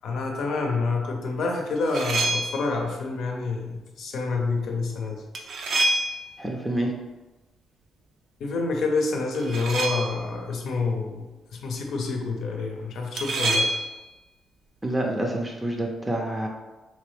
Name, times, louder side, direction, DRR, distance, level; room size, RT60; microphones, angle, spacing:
voice 1, 0.0-5.2 8.4-13.7, left 3 dB, 70° left, 2 dB, 0.6 m, -28 dB
sound 1, 1.8-2.8 5.3-6.5 9.3-10.3 13.2-14.1, right 1 dB, 65° right, 0.5 m, -27 dB
voice 2, 6.4-6.9 14.8-16.5, right 1 dB, 15° right, 1 dB, 0.5 m, -27 dB
3.3 x 2.8 x 3.4 m, 1.1 s
cardioid pair, 90°, 0 cm